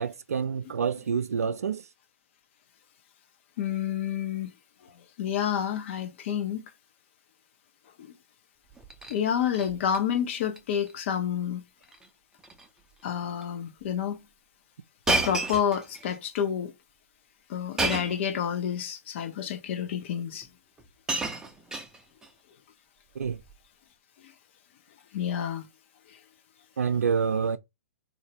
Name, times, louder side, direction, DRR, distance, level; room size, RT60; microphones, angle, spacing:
voice 1, 0.0-1.8 23.2-23.4 26.8-27.6, right 6 dB, 80° right, 0.4 m, -27 dB
voice 2, 3.6-4.5 4.8-6.6 8.0-8.1 9.1-11.6 13.0-14.2 15.1-16.7 17.5-20.5 24.2-24.3 25.1-25.7 26.1-26.2, left 9 dB, 50° left, 0.7 m, -29 dB
Shatter, 8.7-9.2 9.5-10.0 10.3-10.6 10.9-11.0 11.8-12.1 12.4-12.7 13.4-13.5 15.1-16.2 17.8-18.3 19.3-19.4 20.4-20.5 20.8-22.3 23.2-23.5, right 2 dB, 10° right, 0.5 m, -31 dB
3.2 x 2.7 x 2.8 m
hypercardioid pair, 125°, 8 cm